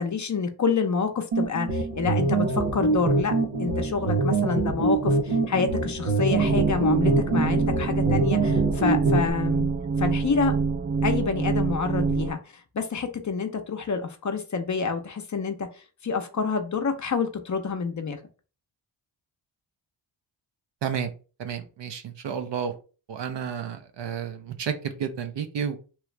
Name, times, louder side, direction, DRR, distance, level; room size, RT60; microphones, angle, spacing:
voice 1, 0.0-3.3 3.6-9.7 10.0-10.5 11.0-12.4 12.7-15.7 16.0-18.2, left 5 dB, 35° left, 6 dB, 0.6 m, -27 dB
sound 1, 1.3-9.3, right 3 dB, 85° right, 1.0 m, -24 dB
sound 2, 6.3-12.3, right 4 dB, 25° right, 0.3 m, -26 dB
voice 2, 21.4-22.7 23.1-25.8, right 7 dB, 60° right, 7 dB, 0.7 m, -31 dB
3.1 x 2.4 x 3.2 m, 0.35 s
cardioid pair, 70°, 49 cm